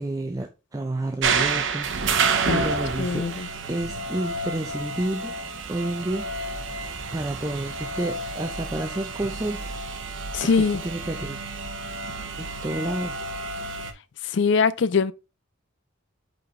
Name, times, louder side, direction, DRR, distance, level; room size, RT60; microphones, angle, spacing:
voice 1, 0.0-3.3 3.7-5.4 5.7-6.8 7.1-9.8 10.4-11.4 12.4-13.2, right 1 dB, 15° right, 0.5 m, -30 dB
sound 1, 1.2-13.9, right 4 dB, 65° right, 0.8 m, -29 dB
voice 2, 3.0-3.5 10.3-10.8 14.2-15.1, left 5 dB, 60° left, 0.4 m, -22 dB
5.4 x 4.2 x 4.4 m
head